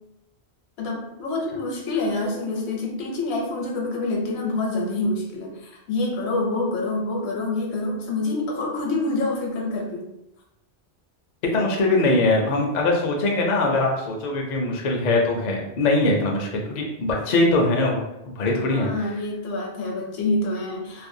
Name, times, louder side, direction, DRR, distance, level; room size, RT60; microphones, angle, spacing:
voice 1, 0.8-10.1 18.5-21.1, left 2 dB, 75° left, 0 dB, 0.9 m, -27 dB
voice 2, 11.5-19.1, left 2 dB, 55° left, 0 dB, 0.5 m, -22 dB
2.5 x 2.1 x 2.6 m, 0.89 s
omnidirectional pair, 1.1 m